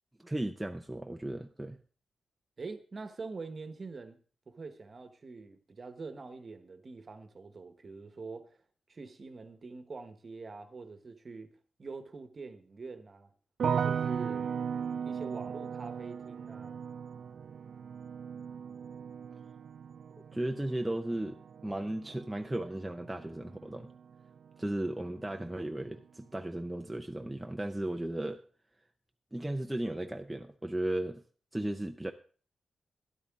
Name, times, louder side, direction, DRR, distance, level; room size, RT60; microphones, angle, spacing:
voice 1, 0.2-1.8 20.2-23.9 24.6-28.4 29.3-31.2 31.5-32.1, right 1 dB, 5° right, 4 dB, 0.5 m, -35 dB
voice 2, 2.6-4.2 4.5-8.4 8.9-11.5 11.8-13.3 13.7-14.4 15.0-16.8, right 4 dB, 35° right, 9 dB, 1.1 m, -44 dB
sound 1, 13.6-24.7 24.9-25.7, right 7 dB, 60° right, 0.5 m, -37 dB
12.5 x 11.0 x 3.6 m, 0.41 s
wide cardioid pair, 145°, 0 cm